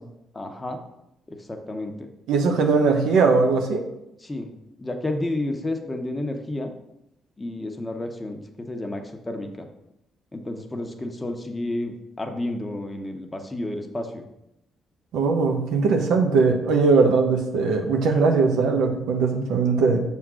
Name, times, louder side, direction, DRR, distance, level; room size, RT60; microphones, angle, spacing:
voice 1, 0.3-0.8 1.3-2.1 4.2-4.5 4.8-6.7 7.4-9.7 10.3-14.2, left 1 dB, 20° left, 3 dB, 1.0 m, -31 dB
voice 2, 2.3-3.8 15.1-20.0, right 4 dB, 85° right, 3 dB, 1.0 m, -20 dB
6.3 x 3.7 x 6.2 m, 0.86 s
cardioid pair, 90°, 0 cm